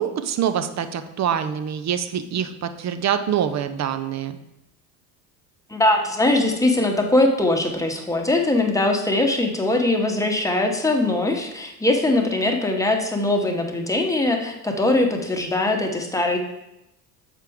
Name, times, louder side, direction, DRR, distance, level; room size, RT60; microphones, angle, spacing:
voice 1, 0.0-4.3, right 9 dB, 35° right, 9 dB, 0.6 m, -25 dB
voice 2, 5.7-16.4, left 2 dB, 5° left, 2 dB, 1.0 m, -21 dB
6.8 x 4.4 x 3.5 m, 0.88 s
hypercardioid pair, 65°, 49 cm